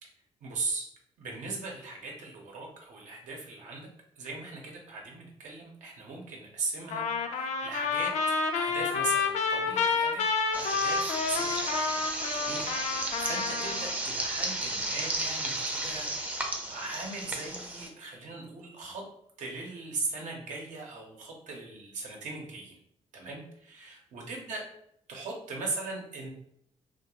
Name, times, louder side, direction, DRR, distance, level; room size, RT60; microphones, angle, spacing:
voice 1, 0.4-0.9 1.2-3.9 4.2-8.1 8.5-10.3 10.5-11.9 12.3-19.0 19.4-22.8 23.1-24.6 25.1-26.3, right 3 dB, 90° right, 0 dB, 0.7 m, -39 dB
Trumpet, 6.9-13.9, left 5 dB, 70° left, 0.4 m, -29 dB
sound 1, 10.5-17.9, right 1 dB, 10° right, 0.4 m, -33 dB
2.3 x 2.1 x 2.9 m, 0.71 s
cardioid pair, 110°, 12 cm